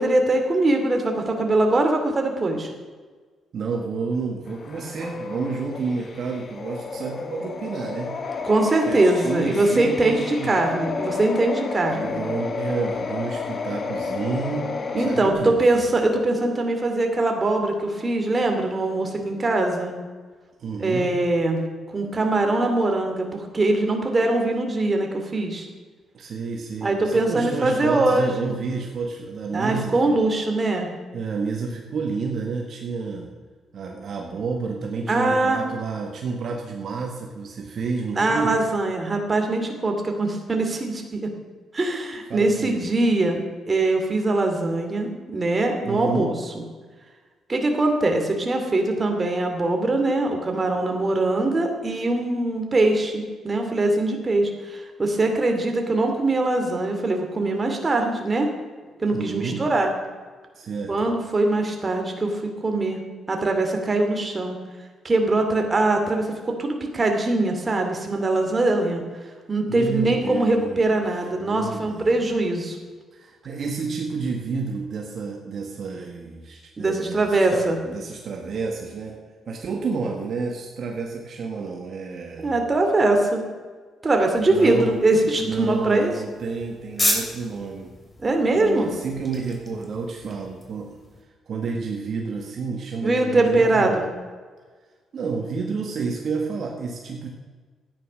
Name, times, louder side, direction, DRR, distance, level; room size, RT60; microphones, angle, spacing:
voice 1, 0.0-2.7 8.4-12.2 14.9-19.9 20.8-21.6 21.9-25.7 26.8-28.5 29.5-30.9 35.1-35.6 38.1-41.3 41.7-46.6 47.5-58.5 59.0-59.9 60.9-63.0 63.3-64.6 65.0-69.0 69.5-72.8 76.8-77.8 82.4-83.4 84.0-86.1 88.2-88.9 93.0-94.0, right 2 dB, 30° right, 3 dB, 2.7 m, -22 dB
voice 2, 3.5-8.2 8.8-10.5 11.7-15.6 20.6-21.1 26.1-30.2 31.1-33.3 33.7-38.6 42.3-42.8 45.8-46.3 59.1-59.6 60.5-61.1 69.7-71.0 71.3-72.3 73.1-82.6 84.5-85.0 85.4-87.9 88.5-91.0 91.5-94.0 95.1-97.3, right 4 dB, 55° right, 1 dB, 1.7 m, -30 dB
sound 1, 4.5-15.3, left 4 dB, 45° left, 1.4 m, -31 dB
sound 2, 84.2-91.2, left 1 dB, 20° left, 3.1 m, -33 dB
12.5 x 9.7 x 6.4 m, 1.4 s
cardioid pair, 90°, 0 cm